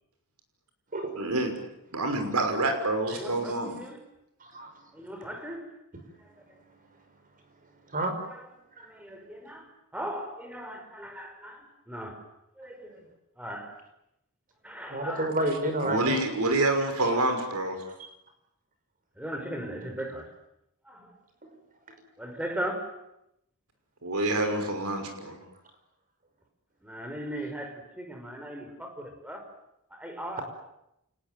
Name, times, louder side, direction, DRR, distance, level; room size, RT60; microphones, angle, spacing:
voice 1, 1.2-1.5 1.9-3.7 15.8-17.8 24.0-25.4, right 2 dB, 85° right, 6 dB, 5.9 m, -27 dB
voice 2, 3.1-4.0 4.9-5.7 6.2-6.6 8.3-8.5 8.8-12.2 12.6-13.1 13.4-13.8 14.6-15.4 16.7-17.2 19.2-20.3 20.8-21.2 22.2-22.9 26.8-29.5 29.9-30.4, right 1 dB, 5° right, 4 dB, 5.4 m, -38 dB
voice 3, 4.4-4.7 7.9-8.1 14.9-16.2 17.8-18.1, right 1 dB, 40° right, 6 dB, 5.7 m, -30 dB
29.0 x 19.0 x 9.2 m, 0.84 s
head